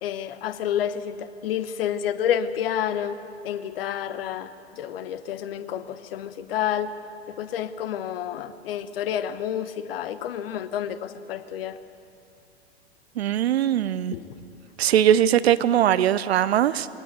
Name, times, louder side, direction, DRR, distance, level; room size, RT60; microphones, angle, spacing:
voice 1, 0.0-3.2 3.4-6.9 7.3-11.8 14.1-14.3, left 9 dB, 55° left, 12 dB, 1.1 m, -29 dB
voice 2, 13.2-14.1 14.8-16.9, right 10 dB, 65° right, 15 dB, 0.6 m, -20 dB
20.0 x 18.5 x 8.2 m, 2.7 s
figure-of-eight pair, 100°, 34 cm